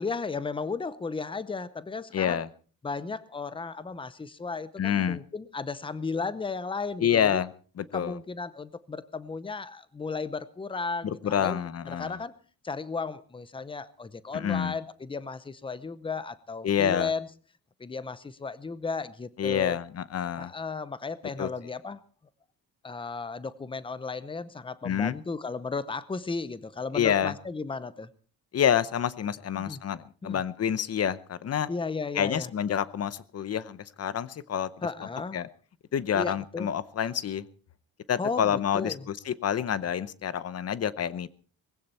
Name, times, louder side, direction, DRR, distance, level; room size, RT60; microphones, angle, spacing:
voice 1, 0.0-2.4 2.8-7.4 7.9-12.4 12.6-17.3 17.8-19.8 20.4-22.0 22.8-28.1 29.6-29.8 30.2-30.4 31.7-32.5 34.8-35.4 36.1-36.7 38.2-39.1, left 4 dB, 15° left, 15 dB, 0.7 m, -35 dB
voice 2, 2.1-2.5 4.8-5.2 7.0-7.5 7.8-8.2 11.0-12.2 14.3-14.7 16.6-17.1 19.4-20.5 21.4-21.5 24.8-25.2 26.9-27.3 28.5-31.7 32.1-34.7 35.3-35.5 35.9-37.5 38.1-41.3, left 9 dB, 40° left, 16 dB, 0.8 m, -28 dB
20.0 x 16.0 x 4.3 m, 0.41 s
wide cardioid pair, 175°, 37 cm